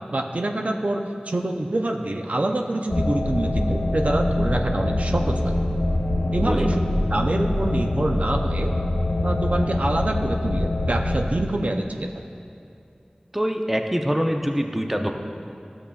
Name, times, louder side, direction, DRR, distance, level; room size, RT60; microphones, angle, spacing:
voice 1, 0.1-5.5 6.3-6.7 7.1-8.7 9.2-12.1, right 1 dB, 60° right, 3 dB, 0.4 m, -26 dB
sound 1, 2.9-11.3, left 1 dB, 70° left, 0.5 m, -24 dB
voice 2, 6.4-6.8 13.3-15.1, equal, 10° right, 4 dB, 0.5 m, -24 dB
12.5 x 7.1 x 2.3 m, 2.6 s
wide cardioid pair, 45°, 3 cm